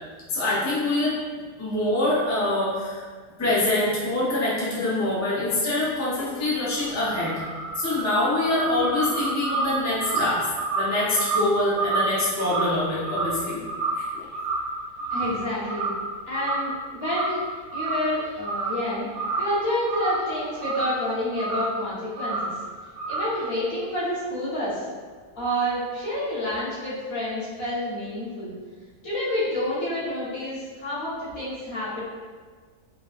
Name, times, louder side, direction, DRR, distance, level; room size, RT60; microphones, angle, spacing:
voice 1, 0.3-1.1 1.6-3.0 3.4-7.4 7.8-10.4 10.7-13.6 14.0-14.3, left 2 dB, 15° left, -9 dB, 0.7 m, -25 dB
sound 1, 6.4-14.1 14.3-14.7 15.0-16.1 16.3-16.7 17.0-17.4 17.7-18.8 19.1-21.0 21.4-21.7 22.2-22.5 23.0-23.4, right 3 dB, 60° right, 1.0 m, -29 dB
voice 2, 15.1-15.9 16.3-17.4 17.7-19.1 19.4-22.5 23.1-24.9 25.4-28.5 29.0-32.0, left 1 dB, 70° left, -10 dB, 1.9 m, -28 dB
3.9 x 3.5 x 2.5 m, 1.5 s
omnidirectional pair, 1.5 m